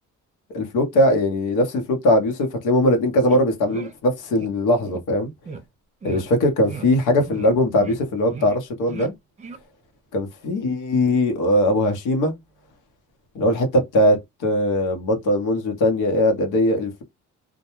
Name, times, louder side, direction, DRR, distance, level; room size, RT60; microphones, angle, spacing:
voice 1, 0.5-5.3 6.0-9.1 10.1-12.3 13.3-17.0, left 1 dB, 90° left, 0.9 m, -20 dB
sound 1, 3.3-3.4 3.7-3.9 4.3-4.5 4.8-5.0 5.4-5.6 6.0-6.2 6.6-6.9 7.2-7.5 7.7-8.0 8.3-8.6 8.9-9.1 9.4-9.6, right 4 dB, 25° right, 0.6 m, -36 dB
2.2 x 2.2 x 2.9 m
cardioid pair, 90°, 30 cm